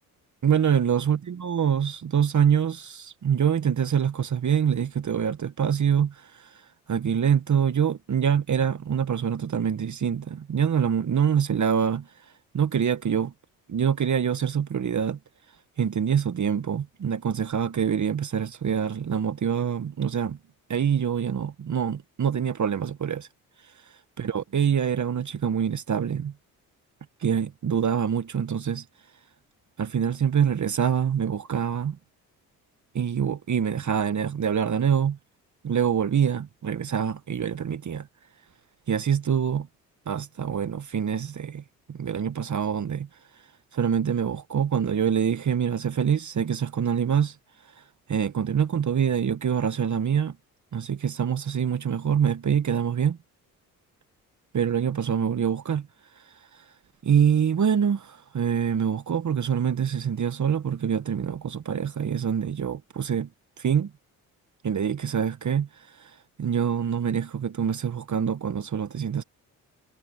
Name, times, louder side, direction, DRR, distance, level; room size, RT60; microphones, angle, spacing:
voice 1, 0.4-6.5 6.9-12.1 12.5-13.3 13.7-15.2 15.8-20.4 20.7-23.3 24.2-26.3 27.2-28.8 29.8-32.0 32.9-35.2 35.6-38.1 38.9-39.7 40.1-41.6 41.9-43.1 43.7-47.3 48.1-50.3 50.7-53.2 54.5-55.9 56.5-56.6 57.0-63.3 63.6-63.9 64.6-69.2, right 8 dB, 45° right, 1.6 m, -25 dB
hypercardioid pair, 50°, 40 cm